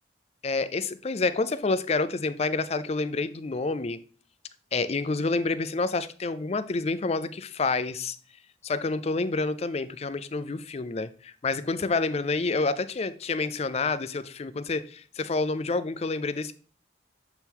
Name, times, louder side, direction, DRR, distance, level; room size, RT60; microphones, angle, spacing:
voice 1, 0.4-4.0 4.7-8.2 8.6-16.5, left 3 dB, 35° left, 0.4 m, -28 dB
7.8 x 3.6 x 4.4 m
head